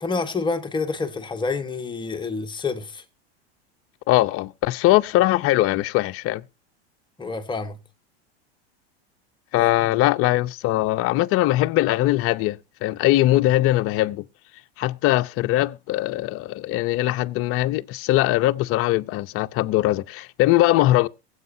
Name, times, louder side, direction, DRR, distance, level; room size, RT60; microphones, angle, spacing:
voice 1, 0.0-3.0 7.2-7.8 9.6-9.7, left 4 dB, 15° left, 1.3 m, -28 dB
voice 2, 4.1-6.4 9.5-14.3 14.8-21.1, left 16 dB, 45° left, 0.7 m, -21 dB
22.5 x 8.1 x 2.7 m
supercardioid pair, 110°, 32 cm